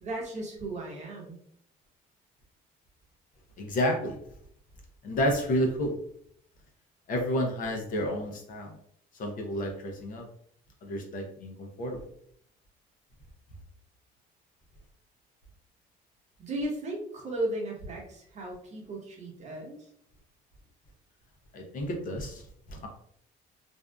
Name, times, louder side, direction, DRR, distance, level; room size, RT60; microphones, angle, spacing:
voice 1, 0.0-1.4 16.4-19.8, right 1 dB, 45° right, -1 dB, 0.9 m, -35 dB
voice 2, 3.6-4.2 5.0-6.0 7.1-8.8 9.2-10.2 10.8-12.1 21.5-22.4 22.7-22.9, equal, 55° left, 2 dB, 0.6 m, -30 dB
2.5 x 2.3 x 2.2 m, 0.66 s
cardioid pair, 110°, 17 cm